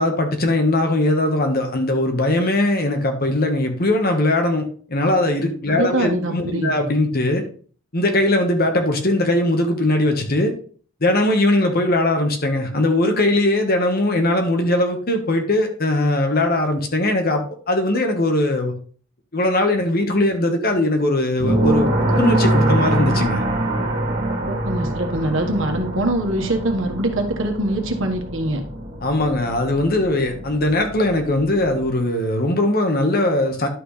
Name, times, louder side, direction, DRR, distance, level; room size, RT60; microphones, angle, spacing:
voice 1, 0.0-7.4 7.9-10.5 11.0-18.7 19.3-21.9 22.2-23.4 29.0-33.7, left 1 dB, 45° left, 4 dB, 1.4 m, -20 dB
voice 2, 5.7-6.7 24.5-28.6, right 1 dB, 65° right, 3 dB, 1.6 m, -23 dB
sound 1, 21.4-31.9, right 1 dB, 50° right, 2.2 m, -24 dB
11.0 x 6.1 x 3.3 m, 0.43 s
head